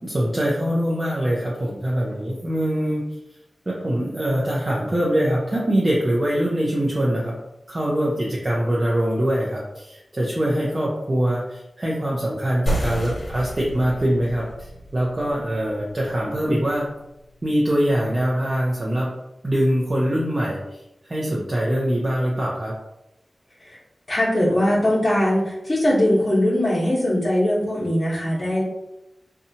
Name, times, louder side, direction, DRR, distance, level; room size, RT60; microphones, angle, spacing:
voice 1, 0.0-3.0 3.7-7.3 7.7-16.9 17.4-19.1 19.4-22.7, equal, 40° right, -5 dB, 0.6 m, -23 dB
sound 1, 12.7-17.8, right 1 dB, 55° left, 1.0 m, -32 dB
voice 2, 24.1-28.6, left 1 dB, 30° left, -9 dB, 0.9 m, -21 dB
2.7 x 2.2 x 2.7 m, 0.90 s
cardioid pair, 45°, 0 cm